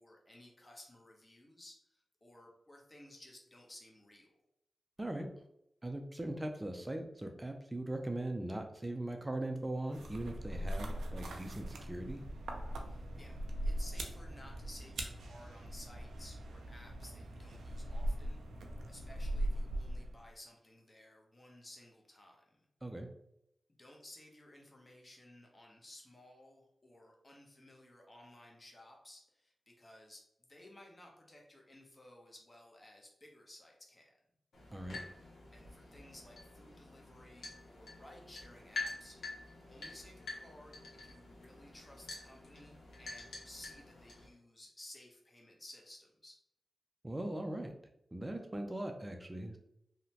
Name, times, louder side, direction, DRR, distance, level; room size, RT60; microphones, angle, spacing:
voice 1, 0.0-4.3 12.9-18.4 18.9-22.6 23.8-34.2 35.5-39.2 39.7-46.4, left 1 dB, 35° left, 0 dB, 0.8 m, -57 dB
voice 2, 5.8-12.2 22.8-23.1 34.7-35.0 47.0-47.7 48.1-49.6, right 1 dB, 20° right, 4 dB, 0.4 m, -40 dB
sound 1, 9.9-20.3, right 1 dB, 90° right, 0.3 m, -40 dB
sound 2, 34.5-44.3, left 3 dB, 85° left, 0.7 m, -48 dB
2.8 x 2.1 x 2.8 m, 0.77 s
cardioid pair, 40°, 0 cm